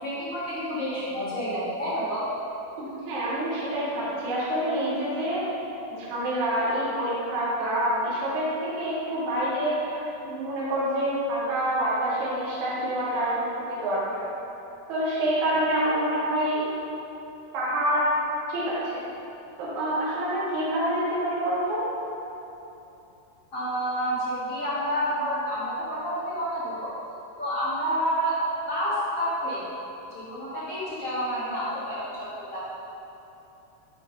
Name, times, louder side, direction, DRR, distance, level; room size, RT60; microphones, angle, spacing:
voice 1, 0.0-2.2 23.5-26.9 27.4-28.4 28.7-29.6 30.1-32.6, equal, 40° left, -11 dB, 1.3 m, -29 dB
voice 2, 2.8-5.5 5.9-14.2 14.9-16.7 17.5-18.1 18.5-19.0 19.6-21.9, right 1 dB, 65° right, -8 dB, 2.8 m, -27 dB
9.1 x 3.4 x 5.1 m, 3.0 s
omnidirectional pair, 3.7 m